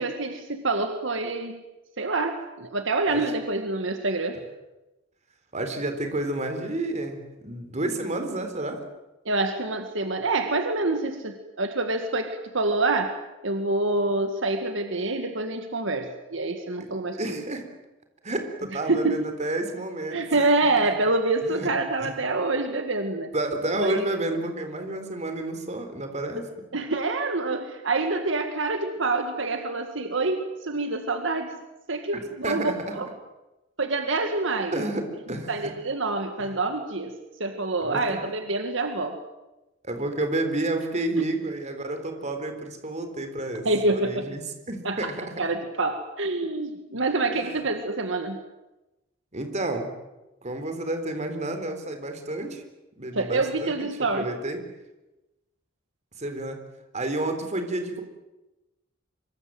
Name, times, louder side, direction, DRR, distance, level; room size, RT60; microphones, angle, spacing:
voice 1, 0.0-1.6 2.0-4.4 9.3-13.2 13.4-17.4 18.9-19.2 20.1-23.3 23.8-24.0 26.7-31.6 31.9-33.1 33.8-34.8 35.5-37.1 37.4-39.2 41.1-41.3 43.6-44.3 44.8-45.1 45.4-48.4 53.1-54.3, right 2 dB, 70° right, 6 dB, 2.1 m, -26 dB
voice 2, 5.5-8.8 16.8-16.9 17.2-17.7 18.2-20.4 20.8-20.9 21.4-21.7 22.0-22.1 23.3-26.5 32.1-33.0 34.7-35.7 36.4-36.6 37.8-38.2 39.8-44.4 44.7-45.2 47.3-47.5 49.3-49.9 50.4-52.6 53.0-53.9 54.1-54.6 56.2-56.6 56.9-58.0, right 2 dB, 35° right, 6 dB, 3.9 m, -30 dB
25.5 x 23.5 x 7.9 m, 1.0 s
head